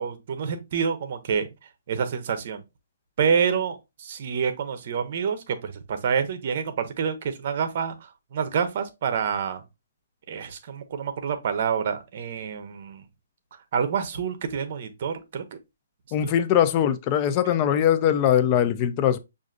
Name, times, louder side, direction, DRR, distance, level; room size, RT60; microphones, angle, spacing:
voice 1, 0.0-1.5 1.9-2.6 3.2-9.6 10.3-13.0 13.7-15.6 16.2-16.3, right 7 dB, 40° right, 0.7 m, -27 dB
voice 2, 16.1-19.2, left 10 dB, 25° left, 0.3 m, -21 dB
6.2 x 2.5 x 2.4 m
hypercardioid pair, 170°, 0 cm